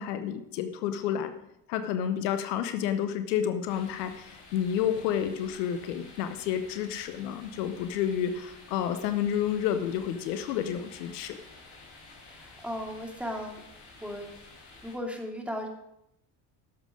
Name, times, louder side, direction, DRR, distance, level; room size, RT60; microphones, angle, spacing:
voice 1, 0.0-1.3 1.7-11.4, left 9 dB, 85° left, 10 dB, 0.9 m, -30 dB
sound 1, 3.7-15.0, left 3 dB, 60° left, 4.2 m, -51 dB
voice 2, 12.3-13.6 14.0-14.3 14.8-15.7, equal, 5° right, 1 dB, 2.6 m, -36 dB
12.0 x 7.6 x 5.0 m, 0.80 s
hypercardioid pair, 65°, 48 cm